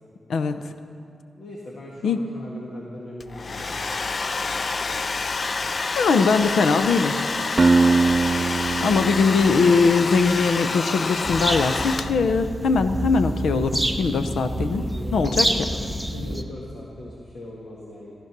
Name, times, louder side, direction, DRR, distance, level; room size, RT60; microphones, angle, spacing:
voice 1, 0.3-0.6 2.0-2.2 5.9-7.2 8.8-14.9 15.1-15.5, left 4 dB, 85° left, 9 dB, 0.8 m, -21 dB
voice 2, 1.4-3.8 7.3-8.0 14.0-18.2, left 1 dB, 70° left, -4 dB, 2.0 m, -40 dB
Domestic sounds home sounds, 3.2-12.4, left 4 dB, 40° left, 0.4 m, -28 dB
Acoustic guitar, 7.6-10.6, right 3 dB, 35° right, 0.4 m, -22 dB
sound 1, 11.2-16.4, right 1 dB, ahead, 0.9 m, -27 dB
14.5 x 14.5 x 6.1 m, 2.5 s
wide cardioid pair, 120°, 0 cm